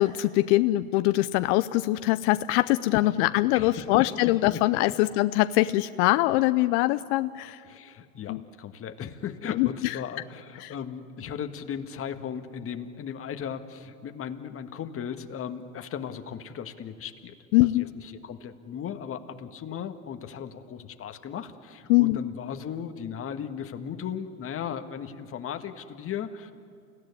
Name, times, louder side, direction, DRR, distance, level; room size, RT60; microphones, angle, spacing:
voice 1, 0.0-7.6 8.3-8.4 9.6-9.9 10.6-10.7 17.5-17.9 21.9-22.2, left 17 dB, 50° left, 13 dB, 0.7 m, -23 dB
voice 2, 3.5-4.6 7.7-17.3 17.8-26.5, left 8 dB, 30° left, 7 dB, 1.7 m, -36 dB
29.0 x 16.5 x 9.8 m, 2.4 s
hypercardioid pair, 95°, 44 cm